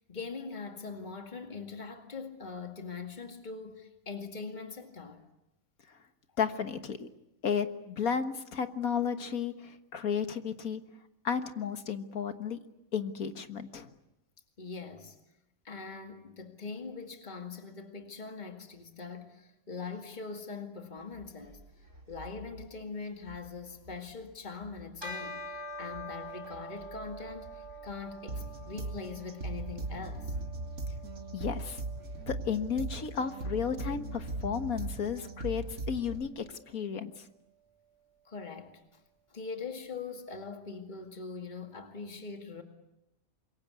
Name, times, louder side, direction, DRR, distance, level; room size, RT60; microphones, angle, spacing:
voice 1, 0.0-5.2 14.6-15.2 15.6-21.6 22.1-30.3 38.3-39.0 39.3-42.6, left 4 dB, 30° left, 2.3 m, -42 dB
voice 2, 6.4-7.1 7.4-10.8 11.2-12.6 12.9-13.9 31.3-31.8 32.3-37.3, left 7 dB, 80° left, 1.9 m, -33 dB
sound 1, 21.0-32.2, right 1 dB, 55° right, 4.5 m, -53 dB
Bell, 25.0-34.7, equal, 15° right, 3.0 m, -47 dB
sound 2, 28.3-36.3, right 2 dB, 75° right, 3.0 m, -39 dB
26.5 x 23.0 x 8.3 m
omnidirectional pair, 1.5 m